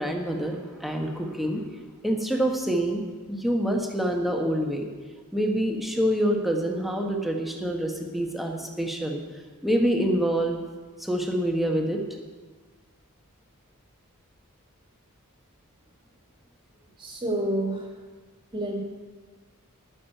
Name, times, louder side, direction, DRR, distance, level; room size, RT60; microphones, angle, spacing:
voice 1, 0.0-1.7 2.0-3.0 3.3-4.9 5.3-9.2 9.6-10.6 11.0-12.0, equal, ahead, 2 dB, 1.2 m, -26 dB
voice 2, 16.8-17.9 18.5-18.8, right 1 dB, 20° right, 1 dB, 1.9 m, -29 dB
12.0 x 6.1 x 8.9 m, 1.4 s
head